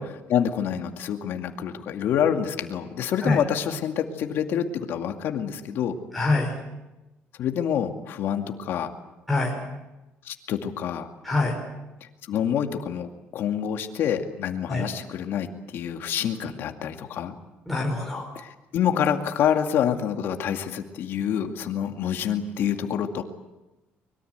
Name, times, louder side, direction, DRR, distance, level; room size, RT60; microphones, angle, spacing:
voice 1, 0.0-6.0 7.4-8.9 10.3-11.1 12.0-15.5 15.7-17.3 18.4-23.2, left 9 dB, 60° left, 5 dB, 2.3 m, -27 dB
voice 2, 6.1-6.5 9.3-9.6 11.2-11.6 14.7-14.8 17.7-18.2, left 2 dB, ahead, -2 dB, 5.1 m, -24 dB
24.5 x 22.5 x 8.1 m, 1.0 s
cardioid pair, 140°, 4 cm